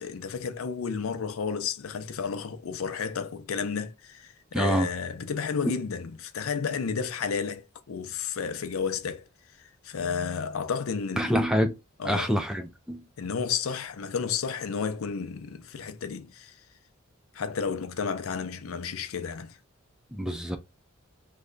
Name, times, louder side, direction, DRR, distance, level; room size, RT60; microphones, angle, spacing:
voice 1, 0.0-9.3 9.6-11.5 12.0-12.3 13.2-16.6 17.3-19.6, left 6 dB, 80° left, 0.5 m, -32 dB
voice 2, 4.5-4.9 11.2-11.8 12.0-13.1 20.1-20.6, equal, 5° right, 0.4 m, -26 dB
3.2 x 2.2 x 3.8 m
head